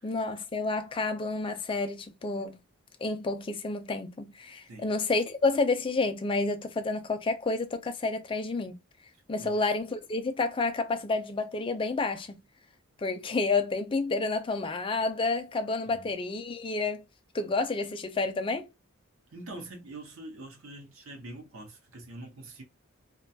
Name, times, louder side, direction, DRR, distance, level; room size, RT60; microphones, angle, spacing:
voice 1, 0.0-2.6 3.0-8.8 9.3-12.4 13.0-17.0 17.3-18.7, left 3 dB, 25° left, 0.4 m, -30 dB
voice 2, 19.3-22.6, right 2 dB, 75° right, 0.8 m, -44 dB
2.3 x 2.2 x 2.7 m
head